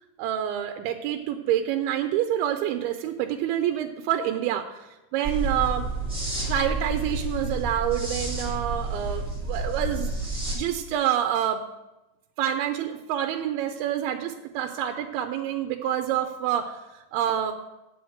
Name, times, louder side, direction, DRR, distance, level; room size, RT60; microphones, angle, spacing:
voice 1, 0.2-5.9 6.5-10.1 10.6-11.6 12.4-17.5, right 10 dB, 85° right, 7 dB, 2.5 m, -27 dB
sound 1, 5.2-10.5, right 2 dB, ahead, 1.8 m, -30 dB
7.8 x 7.1 x 7.8 m, 1.0 s
omnidirectional pair, 4.4 m